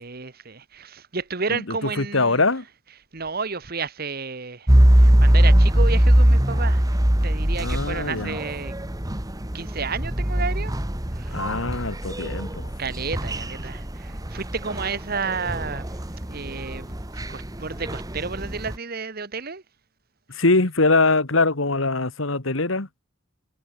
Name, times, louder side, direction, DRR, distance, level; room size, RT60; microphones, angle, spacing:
voice 1, 0.0-2.4 3.1-4.7 5.0-6.8 7.2-8.7 9.5-10.7 11.2-11.4 12.8-15.9 16.3-17.0 17.3-19.6, right 5 dB, 50° right, 1.5 m, -31 dB
voice 2, 1.5-2.6 7.6-8.4 11.3-12.7 20.3-22.9, left 3 dB, 75° left, 2.0 m, -23 dB
sound 1, 4.7-18.8, equal, 20° right, 1.6 m, -21 dB
head